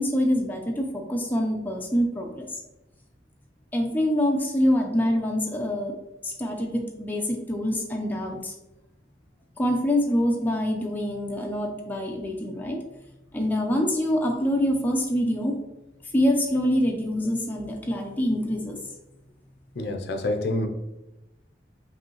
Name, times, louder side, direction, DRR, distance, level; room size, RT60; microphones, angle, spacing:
voice 1, 0.0-2.6 3.7-5.9 6.2-8.5 9.6-12.8 13.3-15.5 16.1-18.8, equal, 10° left, 1 dB, 0.4 m, -25 dB
voice 2, 19.8-20.7, left 2 dB, 65° left, 4 dB, 0.5 m, -27 dB
5.1 x 2.7 x 3.0 m, 0.95 s
head